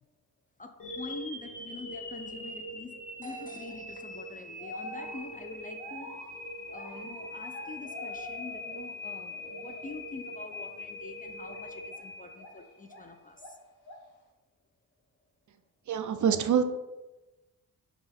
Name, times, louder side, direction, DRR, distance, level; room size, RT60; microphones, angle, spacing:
voice 1, 0.6-6.2 6.7-13.6, left 3 dB, 25° left, 5 dB, 0.3 m, -45 dB
sound 1, 0.8-12.9, left 1 dB, 60° left, 1.4 m, -42 dB
sound 2, 3.7-4.0 4.6-9.0 9.2-10.0 10.4-10.7 11.4-13.1 13.4-14.2, left 2 dB, 75° left, 0.9 m, -47 dB
voice 2, 15.9-16.6, right 8 dB, 50° right, 8 dB, 0.5 m, -25 dB
5.2 x 2.5 x 3.4 m, 1.1 s
cardioid pair, 50°, 39 cm